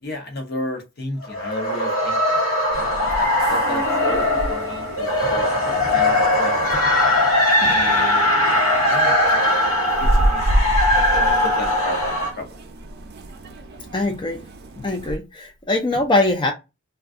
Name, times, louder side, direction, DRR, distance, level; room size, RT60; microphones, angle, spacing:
voice 1, 0.0-2.4 2.8-6.7 7.6-9.5 9.8-12.6, left 1 dB, 50° left, 0.8 m, -34 dB
sound 1, 1.2-12.3, left 1 dB, 80° left, 0.9 m, -20 dB
sound 2, 2.7-15.2, equal, 50° right, 0.5 m, -29 dB
voice 2, 13.9-14.4 14.8-16.5, left 2 dB, 25° left, 0.4 m, -22 dB
2.5 x 2.2 x 3.5 m
head